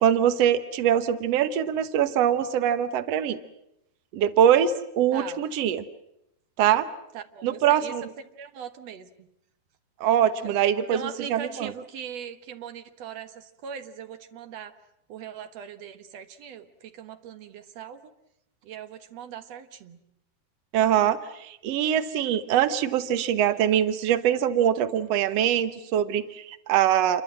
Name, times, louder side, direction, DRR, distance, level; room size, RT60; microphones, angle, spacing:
voice 1, 0.0-3.4 4.1-5.8 6.6-6.9 7.4-8.1 10.0-11.7 20.7-27.2, right 10 dB, 85° right, 11 dB, 1.4 m, -23 dB
voice 2, 7.1-7.9 8.4-9.3 10.4-10.6 10.9-14.8 15.1-18.0 18.6-20.0, right 7 dB, 60° right, 9 dB, 1.9 m, -40 dB
28.5 x 23.5 x 7.6 m, 0.81 s
omnidirectional pair, 4.5 m